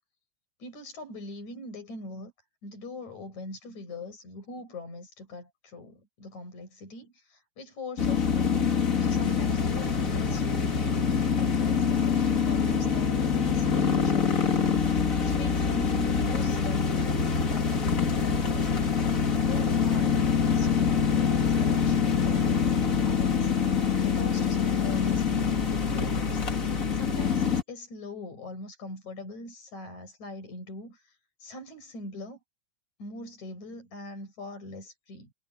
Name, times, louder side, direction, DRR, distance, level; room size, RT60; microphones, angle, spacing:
voice 1, 0.6-2.3 2.6-8.6 9.0-17.2 17.5-26.5 26.9-31.1 31.4-32.4 33.0-35.3, left 2 dB, 70° left, 9.0 m, -42 dB
sound 1, 8.0-27.6, left 6 dB, 30° left, 1.9 m, -25 dB
omnidirectional pair, 3.4 m